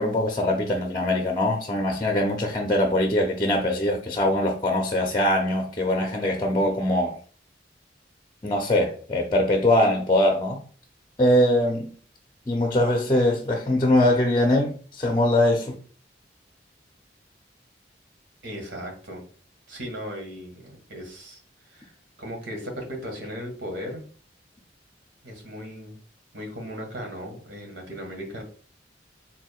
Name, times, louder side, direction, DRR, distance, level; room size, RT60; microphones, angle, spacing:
voice 1, 0.0-7.2 8.4-10.6 11.2-11.9 12.5-15.7, left 1 dB, 25° left, 0.6 m, -22 dB
voice 2, 18.4-19.2 19.7-21.4 21.7-24.0 25.2-26.0 26.3-28.4, equal, 80° right, 1.7 m, -37 dB
4.6 x 3.6 x 2.4 m
head